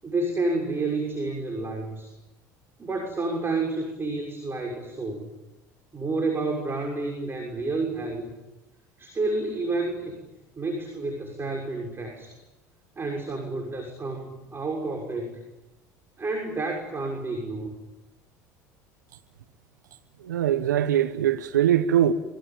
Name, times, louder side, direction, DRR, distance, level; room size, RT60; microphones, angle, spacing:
voice 1, 0.0-2.1 2.8-5.3 5.9-8.2 9.0-10.1 10.6-12.4 13.0-15.4 16.2-17.7, right 3 dB, 25° right, 6.5 m, -30 dB
voice 2, 20.2-22.1, right 10 dB, 85° right, 1.1 m, -22 dB
26.0 x 23.5 x 8.9 m
hypercardioid pair, 75°, 10 cm